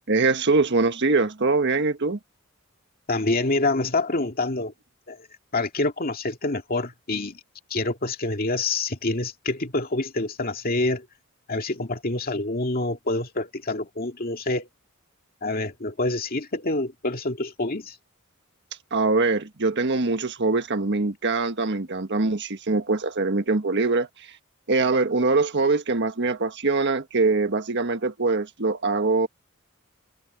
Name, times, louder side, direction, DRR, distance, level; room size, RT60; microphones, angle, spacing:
voice 1, 0.1-2.2 18.9-24.3 24.7-29.3, right 3 dB, 55° right, 1.5 m, -23 dB
voice 2, 3.1-4.7 5.1-5.2 5.5-7.4 7.7-11.1 11.5-14.7 15.4-18.0, left 2 dB, 45° left, 2.3 m, -26 dB
head